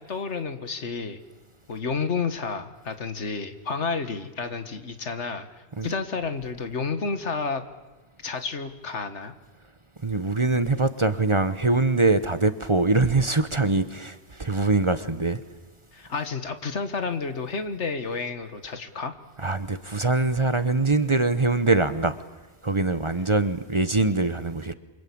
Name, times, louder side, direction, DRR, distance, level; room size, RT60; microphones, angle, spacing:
voice 1, 0.1-1.2 1.7-5.5 5.8-7.6 8.2-9.3 15.9-19.2, left 4 dB, 90° left, 1.9 m, -30 dB
voice 2, 10.0-15.4 19.4-22.2 22.6-24.7, right 3 dB, 30° right, 1.0 m, -23 dB
27.5 x 25.0 x 8.7 m
omnidirectional pair, 1.2 m